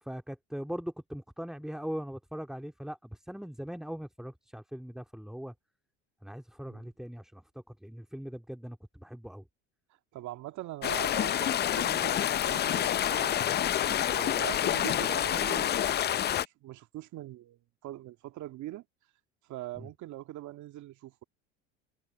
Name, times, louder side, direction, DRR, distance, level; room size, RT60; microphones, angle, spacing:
voice 1, 0.0-5.5 6.2-9.5 19.8-19.9, equal, ahead, 2.7 m, -40 dB
voice 2, 10.1-13.5 13.9-18.8 19.5-21.2, right 15 dB, 50° right, 2.0 m, -43 dB
sound 1, 10.8-16.4, left 11 dB, 30° left, 0.5 m, -28 dB
hypercardioid pair, 80°, 36 cm